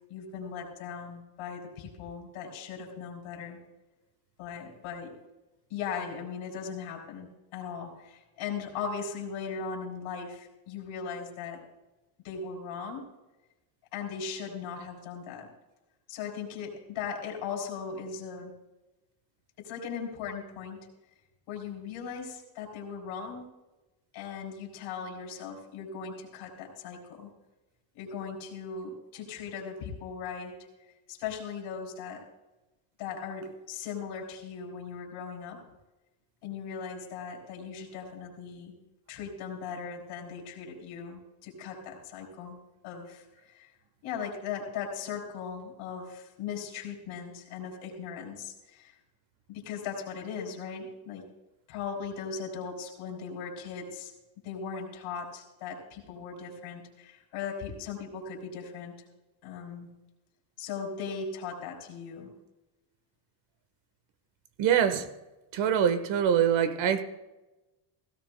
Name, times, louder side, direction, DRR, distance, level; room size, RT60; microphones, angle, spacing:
voice 1, 0.1-3.6 4.4-5.1 5.7-11.6 12.2-13.0 13.9-15.5 16.1-18.5 19.6-20.8 21.5-23.5 24.1-27.3 27.9-30.6 31.1-32.3 33.0-35.6 36.4-38.7 39.1-42.6 42.8-43.7 44.0-48.9 49.5-51.3 51.7-54.1 54.4-58.9 59.4-59.9 60.6-62.3, left 6 dB, 85° left, 0 dB, 3.4 m, -38 dB
voice 2, 64.6-65.1 65.5-67.0, right 8 dB, 65° right, 11 dB, 1.3 m, -24 dB
17.0 x 16.0 x 2.2 m, 1.0 s
cardioid pair, 105°, 48 cm